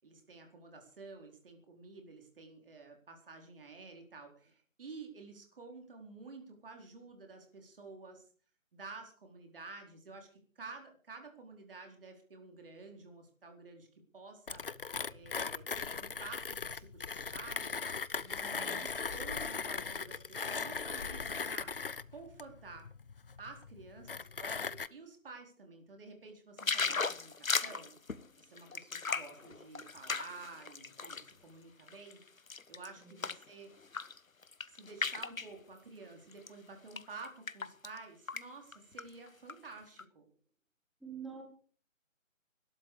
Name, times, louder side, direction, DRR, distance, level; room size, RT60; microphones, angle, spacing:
voice 1, 0.0-8.3 8.7-14.6 15.1-17.8 18.2-21.7 22.1-22.9 23.4-27.9 28.4-32.2 32.7-33.7 34.7-40.3, right 4 dB, 45° right, 3 dB, 4.3 m, -51 dB
Mechanisms, 14.5-24.9, left 5 dB, 45° left, 0.7 m, -39 dB
voice 2, 18.3-18.8 33.0-33.2 41.0-41.4, right 6 dB, ahead, 1 dB, 1.1 m, -47 dB
sound 1, 26.6-31.3 31.8-33.5 33.8-34.2 34.4-35.5 36.3-36.5 36.9-38.0 38.3-38.4 38.7-39.5 40.0-40.1, left 4 dB, 85° left, 1.3 m, -36 dB
21.0 x 12.5 x 4.9 m, 0.42 s
figure-of-eight pair, 155°, 40 cm